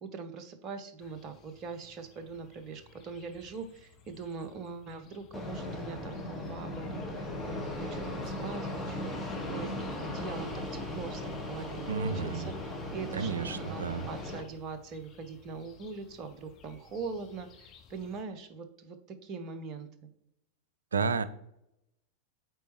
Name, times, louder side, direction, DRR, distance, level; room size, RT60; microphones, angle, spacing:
voice 1, 0.0-9.1 9.5-19.9, right 4 dB, 35° right, 9 dB, 0.7 m, -42 dB
sound 1, 1.0-18.2, left 7 dB, 35° left, 1.0 m, -56 dB
Fixed-wing aircraft airplane, 5.3-14.4, left 1 dB, 10° left, 1.3 m, -38 dB
voice 2, 11.9-12.5 13.2-14.1 20.9-21.2, right 5 dB, 70° right, 14 dB, 0.4 m, -31 dB
8.0 x 4.2 x 3.1 m, 0.79 s
figure-of-eight pair, 90°, 0 cm